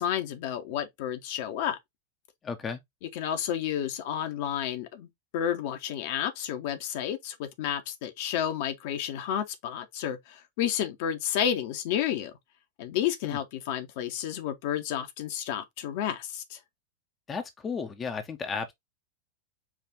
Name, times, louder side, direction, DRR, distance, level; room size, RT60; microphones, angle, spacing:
voice 1, 0.0-1.8 3.1-12.3 12.8-16.6, left 10 dB, 50° left, 0.8 m, -31 dB
voice 2, 2.4-2.8 13.2-13.4 17.3-18.7, left 5 dB, 20° left, 0.6 m, -34 dB
4.9 x 2.4 x 3.6 m
figure-of-eight pair, 90°, 0 cm